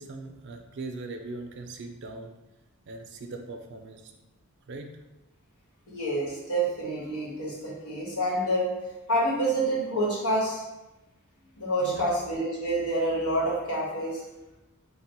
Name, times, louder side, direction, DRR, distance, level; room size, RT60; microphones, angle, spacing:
voice 1, 0.0-2.4 2.9-4.1 4.7-4.9 11.8-12.1, right 3 dB, 50° right, 4 dB, 0.4 m, -40 dB
voice 2, 5.9-8.7 9.1-10.6 11.6-14.2, right 1 dB, 85° left, -5 dB, 1.3 m, -27 dB
3.3 x 2.2 x 4.3 m, 1.0 s
head